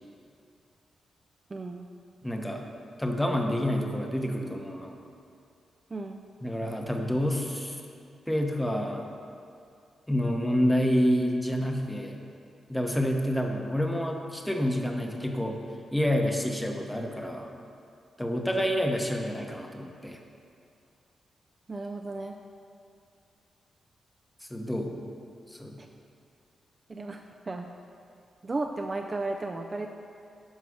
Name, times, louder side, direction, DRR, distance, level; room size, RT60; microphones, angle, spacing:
voice 1, 1.5-1.9 5.9-6.2 21.7-22.4 25.8-25.9 26.9-27.2 27.5-27.7 28.4-29.9, right 2 dB, 30° right, 3 dB, 0.4 m, -34 dB
voice 2, 2.2-2.6 3.0-5.0 6.4-7.8 8.3-9.1 10.1-12.2 12.7-15.6 15.9-17.5 18.2-20.2 24.5-25.0 25.5-25.7, equal, 5° left, 2 dB, 0.9 m, -28 dB
11.0 x 4.7 x 6.3 m, 2.5 s
wide cardioid pair, 125°, 0 cm